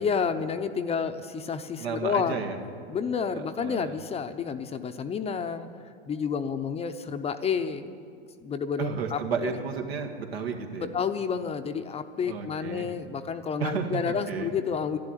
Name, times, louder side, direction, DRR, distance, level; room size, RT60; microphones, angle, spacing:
voice 1, 0.0-2.4 2.9-5.7 6.1-7.9 8.4-9.6 10.8-15.0, left 6 dB, 20° left, 9 dB, 0.7 m, -30 dB
voice 2, 1.8-2.6 3.3-4.0 8.8-10.9 12.2-12.9 13.6-14.5, right 6 dB, 85° right, 4 dB, 1.9 m, -32 dB
11.5 x 11.5 x 9.1 m, 2.2 s
hypercardioid pair, 110°, 30 cm